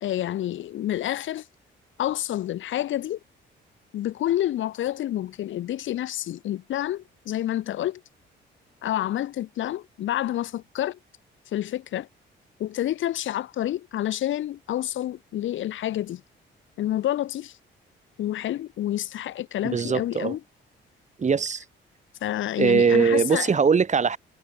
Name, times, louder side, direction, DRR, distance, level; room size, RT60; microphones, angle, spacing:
voice 1, 0.0-1.5 2.0-3.2 3.9-8.0 8.8-11.0 11.5-12.1 12.6-16.2 16.8-17.6 18.2-20.4 22.2-23.5, left 13 dB, 75° left, 2.1 m, -28 dB
voice 2, 19.6-20.3 21.2-21.6 22.6-24.2, right 5 dB, 35° right, 2.2 m, -21 dB
cardioid pair, 90°, 20 cm